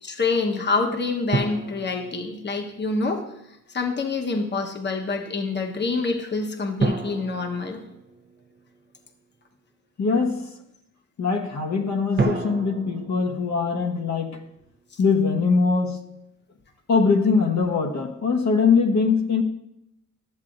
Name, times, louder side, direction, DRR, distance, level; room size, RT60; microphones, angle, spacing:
voice 1, 0.0-3.2 3.7-7.8, left 3 dB, 35° left, 1.1 m, -26 dB
sound 1, 1.3-2.9 6.8-8.7 12.2-14.4, right 3 dB, 35° right, 0.8 m, -30 dB
voice 2, 10.0-10.5 11.2-14.4 15.0-16.0 16.9-19.4, left 4 dB, 60° left, 1.1 m, -22 dB
13.0 x 7.3 x 2.5 m
cardioid pair, 75°, 32 cm